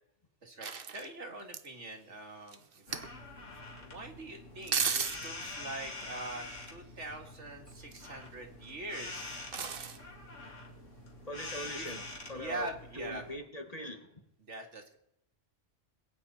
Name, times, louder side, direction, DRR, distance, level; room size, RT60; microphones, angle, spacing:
voice 1, 0.4-3.2 3.8-9.5 11.8-11.9 12.3-13.3 14.4-15.0, right 2 dB, 75° right, 4 dB, 2.4 m, -43 dB
sound 1, 0.6-1.7 2.5-3.2 4.6-5.3 7.7-8.3 9.5-10.0 11.6-11.7, right 6 dB, 50° right, 1.1 m, -35 dB
sound 2, 2.9-13.4, left 2 dB, 90° left, 2.9 m, -46 dB
voice 2, 11.3-12.0 12.3-12.7 13.0-14.0, equal, 30° left, 5 dB, 1.9 m, -41 dB
22.0 x 9.5 x 4.3 m, 0.78 s
omnidirectional pair, 1.2 m